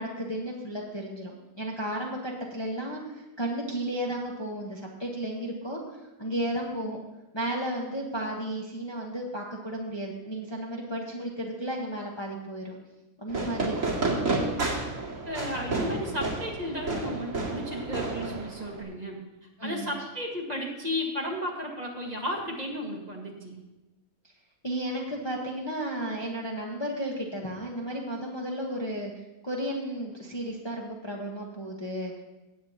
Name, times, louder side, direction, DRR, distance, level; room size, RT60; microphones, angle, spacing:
voice 1, 0.0-3.0 3.4-5.8 6.2-7.0 7.3-12.8 13.2-14.2 19.6-19.9 24.6-29.1 29.4-32.2, right 1 dB, 20° left, -2 dB, 1.2 m, -33 dB
Fireworks, 13.3-18.8, right 3 dB, 60° right, 2.5 m, -31 dB
voice 2, 15.3-19.2 19.6-23.6, left 1 dB, 30° right, -1 dB, 1.7 m, -34 dB
17.5 x 8.6 x 2.9 m, 1.0 s
omnidirectional pair, 1.5 m